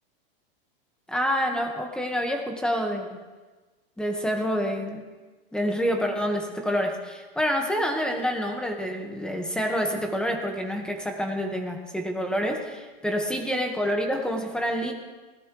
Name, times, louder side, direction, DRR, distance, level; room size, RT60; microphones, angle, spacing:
voice 1, 1.1-3.2 4.0-5.0 5.5-14.9, equal, 5° left, 2 dB, 1.9 m, -27 dB
20.5 x 17.0 x 3.4 m, 1.3 s
hypercardioid pair, 140°, 30 cm